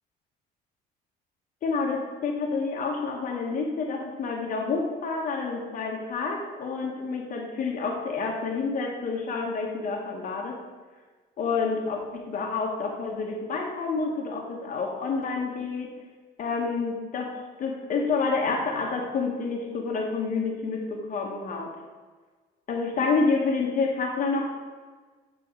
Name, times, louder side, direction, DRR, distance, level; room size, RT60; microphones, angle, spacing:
voice 1, 1.6-10.6 11.4-15.9 16.4-17.3 17.6-21.7 22.7-24.4, left 4 dB, 50° left, 0 dB, 1.1 m, -28 dB
8.0 x 3.7 x 5.2 m, 1.4 s
cardioid pair, 110°, 17 cm